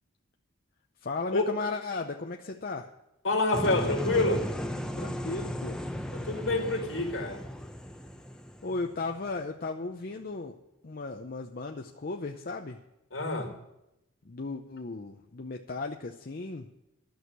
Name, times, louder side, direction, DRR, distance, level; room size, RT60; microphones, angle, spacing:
voice 1, 1.0-2.9 5.0-5.8 8.6-10.6 10.8-12.8 14.2-16.7, left 3 dB, 45° left, 3 dB, 0.7 m, -35 dB
voice 2, 3.2-4.5 6.1-7.5 13.1-13.5, left 2 dB, 65° left, 2 dB, 2.2 m, -27 dB
sound 1, 3.5-9.4, equal, 5° left, 0.7 m, -36 dB
12.5 x 6.5 x 9.3 m, 0.88 s
head